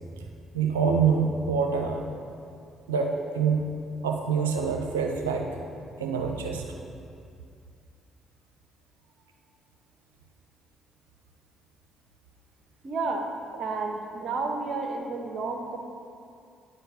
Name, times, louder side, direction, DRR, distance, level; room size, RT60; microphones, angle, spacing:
voice 1, 0.5-2.0 2.9-3.7 4.0-5.5 6.0-6.6, right 6 dB, 85° right, 2 dB, 0.6 m, -25 dB
voice 2, 12.8-13.3 13.6-15.8, right 3 dB, 55° right, 3 dB, 1.0 m, -31 dB
9.7 x 4.5 x 4.9 m, 2.4 s
hypercardioid pair, 45°, 0 cm